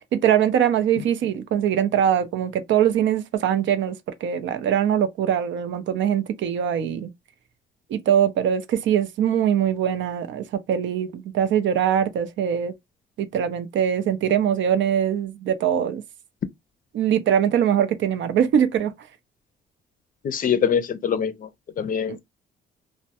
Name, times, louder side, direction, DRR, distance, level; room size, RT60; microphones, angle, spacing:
voice 1, 0.1-4.0 4.2-7.1 7.9-12.7 13.2-16.0 16.9-18.9 22.1-22.2, right 9 dB, 70° right, 0.5 m, -22 dB
voice 2, 20.2-21.5 21.8-22.2, left 7 dB, 45° left, 0.4 m, -23 dB
2.2 x 2.1 x 2.8 m
cardioid pair, 90°, 20 cm